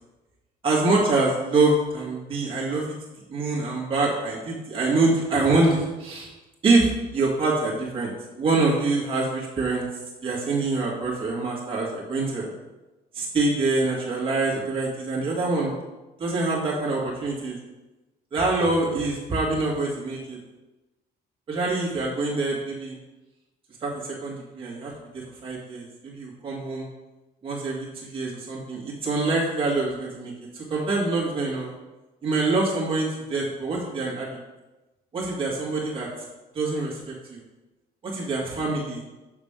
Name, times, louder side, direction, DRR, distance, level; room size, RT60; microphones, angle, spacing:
voice 1, 0.6-2.9 3.3-6.3 6.6-9.8 10.2-12.5 13.1-15.7 16.2-17.6 18.3-20.4 21.5-23.0 23.8-26.9 27.4-31.7 32.2-34.3 35.1-36.1 36.5-37.4 38.0-39.0, right 3 dB, 30° right, -5 dB, 1.9 m, -25 dB
6.4 x 6.2 x 5.1 m, 1.1 s
cardioid pair, 175°, 17 cm